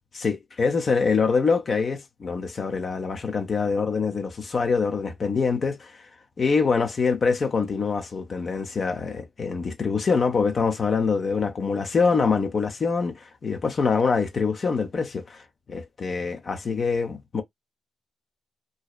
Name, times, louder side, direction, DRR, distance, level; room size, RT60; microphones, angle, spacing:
voice 1, 0.1-6.0 6.4-15.4 15.7-17.4, left 5 dB, 55° left, 0.6 m, -25 dB
2.7 x 2.0 x 2.3 m
supercardioid pair, 50°, 0 cm